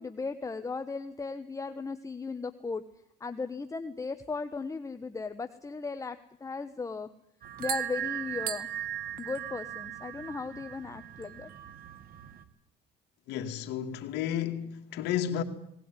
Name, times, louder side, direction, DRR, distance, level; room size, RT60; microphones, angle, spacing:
voice 1, 0.0-2.8 3.2-7.1 7.6-8.7 9.2-11.5, left 4 dB, 20° left, 1.2 m, -36 dB
sound 1, 7.4-12.4, right 10 dB, 60° right, 1.8 m, -38 dB
voice 2, 13.3-15.4, left 10 dB, 85° left, 2.3 m, -32 dB
19.5 x 19.0 x 9.8 m
cardioid pair, 110°, 17 cm